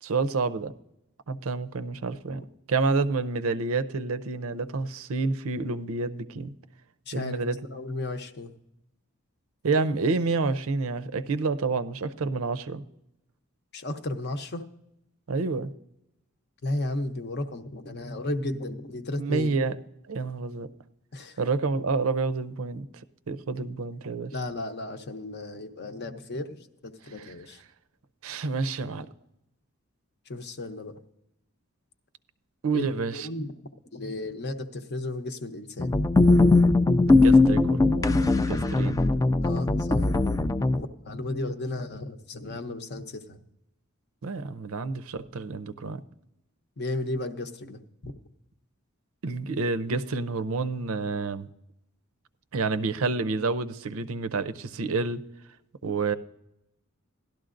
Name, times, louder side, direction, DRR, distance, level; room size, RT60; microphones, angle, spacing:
voice 1, 0.0-0.7 1.3-6.5 7.1-7.6 9.6-12.8 15.3-15.7 19.2-19.8 20.1-20.7 21.4-22.9 23.3-24.3 27.2-27.3 28.2-29.1 32.6-33.3 37.1-39.0 44.2-46.0 49.2-51.5 52.5-55.2 55.8-56.2, right 4 dB, 65° right, 0.5 m, -29 dB
voice 2, 7.1-8.5 13.7-14.6 16.6-19.5 21.1-21.4 24.3-27.6 30.3-31.0 32.7-33.6 33.9-36.0 39.4-40.1 40.8-43.4 46.8-48.1, left 2 dB, 50° left, 0.8 m, -34 dB
sound 1, 35.8-40.8, left 3 dB, 15° left, 0.3 m, -20 dB
17.0 x 12.0 x 2.5 m
head